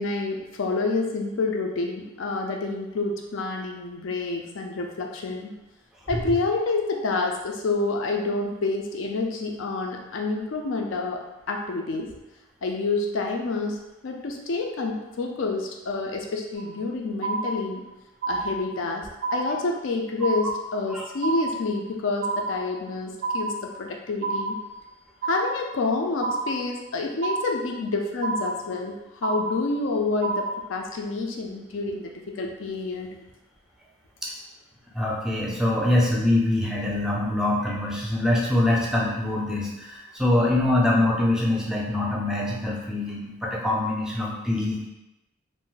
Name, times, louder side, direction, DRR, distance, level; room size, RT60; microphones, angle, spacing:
voice 1, 0.0-5.5 6.1-12.1 12.6-17.8 18.3-24.6 25.2-33.1, left 3 dB, 75° left, 2 dB, 0.4 m, -28 dB
sound 1, 16.6-16.9 17.2-17.9 18.2-18.9 19.2-19.9 20.2-20.9 21.2-21.9 22.2-22.9 23.2-23.9 24.2-24.9 25.2-25.9 26.2-26.9 27.2-27.9 28.2-28.9 29.2-29.9 30.2-30.9, right 3 dB, 65° right, 0.4 m, -30 dB
voice 2, 34.9-44.8, left 1 dB, 5° right, -3 dB, 0.4 m, -24 dB
2.5 x 2.1 x 3.8 m, 0.96 s
head